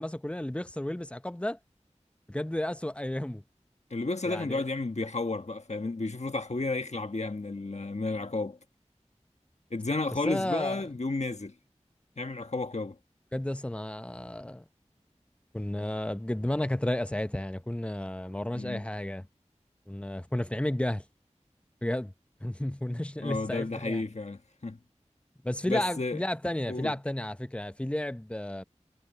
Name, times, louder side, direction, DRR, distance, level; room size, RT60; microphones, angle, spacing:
voice 1, 0.0-1.6 2.3-3.4 4.3-4.6 10.3-10.8 13.3-14.6 15.5-19.3 19.9-21.0 21.8-22.1 22.4-24.0 25.4-28.6, left 1 dB, 10° left, 0.8 m, -32 dB
voice 2, 3.9-8.6 9.7-11.5 12.2-13.0 18.5-18.8 23.2-24.8 25.6-26.2 26.7-26.9, left 3 dB, 65° left, 1.3 m, -32 dB
wide cardioid pair, 40°, 12 cm